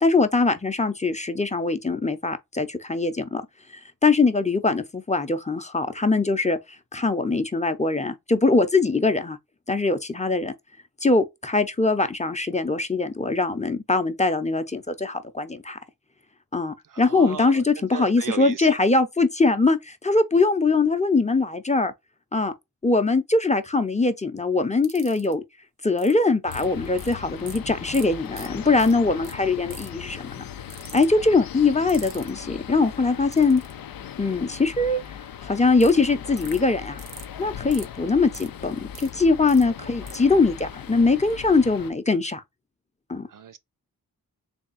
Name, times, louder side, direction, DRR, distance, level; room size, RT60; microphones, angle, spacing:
voice 1, 0.0-3.4 4.0-6.6 6.9-9.4 9.7-10.5 11.0-15.8 16.5-21.9 22.3-22.5 22.8-25.4 25.8-30.4 30.9-33.6 34.2-35.0 35.4-37.0 37.4-42.4 43.1-43.3, left 3 dB, 20° left, 0.7 m, -22 dB
voice 2, 16.9-17.6 17.9-18.7 39.8-39.9 43.3-43.6, right 7 dB, 60° right, 0.6 m, -36 dB
sound 1, 24.8-25.3 26.0-26.1 26.5-27.1 27.5-27.6 27.9-28.1 28.3-28.5 28.8-28.9 29.2-29.3 29.7-30.0 30.7-31.1 31.9-32.3 33.3-33.7 35.8-35.9 36.4-36.6 37.0-37.3 37.7-37.9 38.3-39.1 39.5-39.6 40.1-40.2, right 6 dB, 85° right, 0.9 m, -41 dB
sound 2, 26.5-41.9, left 9 dB, 65° left, 0.5 m, -39 dB
3.5 x 2.3 x 4.1 m
cardioid pair, 45°, 38 cm